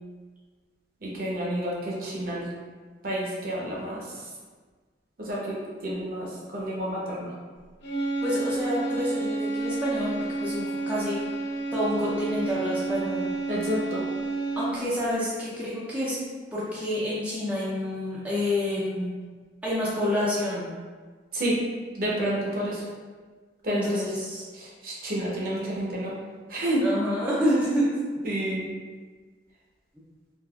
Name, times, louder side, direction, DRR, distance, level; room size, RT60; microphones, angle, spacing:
voice 1, 1.0-2.5 3.0-4.0 5.2-7.3 13.5-14.0 21.3-21.6 22.0-22.8 23.6-24.1 24.5-26.1 26.5-26.8 28.2-28.7, right 1 dB, 50° right, -4 dB, 0.7 m, -29 dB
sound 1, 7.8-15.0, right 3 dB, 80° left, 0.6 m, -30 dB
voice 2, 8.2-11.2 11.7-13.3 14.6-16.2 16.5-19.2 19.6-20.7 23.7-24.5 26.8-27.9, left 1 dB, 10° right, -8 dB, 0.5 m, -28 dB
3.5 x 2.4 x 2.3 m, 1.5 s
head